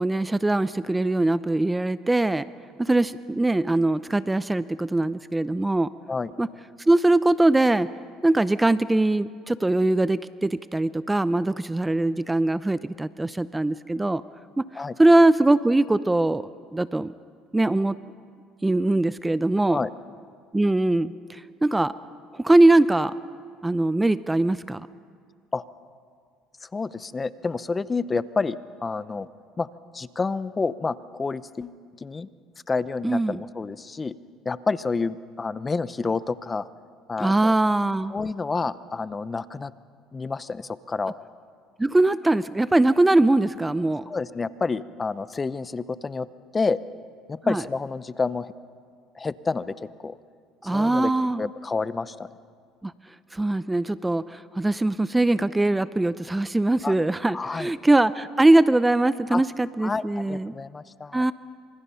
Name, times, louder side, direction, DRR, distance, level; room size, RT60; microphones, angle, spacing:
voice 1, 0.0-2.5 2.8-5.9 6.4-6.5 6.9-7.9 8.2-14.2 14.6-14.7 15.0-16.4 16.7-17.1 17.5-18.0 18.6-19.8 20.5-21.9 22.3-23.1 23.6-24.8 33.0-33.4 37.2-38.2 41.8-44.0 47.4-47.6 50.6-51.5 52.8-52.9 53.3-60.5 61.1-61.3, right 2 dB, 10° right, 15 dB, 0.6 m, -21 dB
voice 2, 26.6-29.3 29.6-29.7 29.9-32.3 32.7-34.1 34.4-36.7 37.1-37.5 38.1-39.7 40.1-41.2 44.1-46.3 46.5-46.8 47.3-48.5 49.1-50.2 50.6-51.1 51.4-52.3 56.8-56.9 57.3-57.7 59.3-59.4 59.8-61.2, left 4 dB, 25° left, 15 dB, 0.8 m, -29 dB
28.0 x 25.5 x 5.7 m, 2.1 s
supercardioid pair, 95°, 0 cm